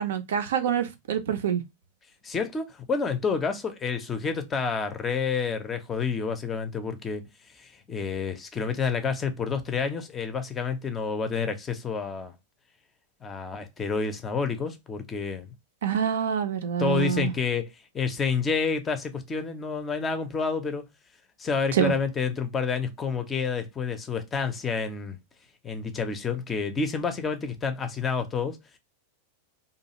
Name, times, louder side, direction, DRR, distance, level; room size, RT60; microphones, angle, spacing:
voice 1, 0.0-1.6 15.8-17.3 21.7-21.9, right 8 dB, 60° right, 0.4 m, -26 dB
voice 2, 2.2-7.2 7.6-12.3 13.2-15.5 16.8-20.8 21.4-25.2 25.6-28.6, left 5 dB, 20° left, 0.5 m, -29 dB
2.6 x 2.3 x 2.8 m
figure-of-eight pair, 90°, 0 cm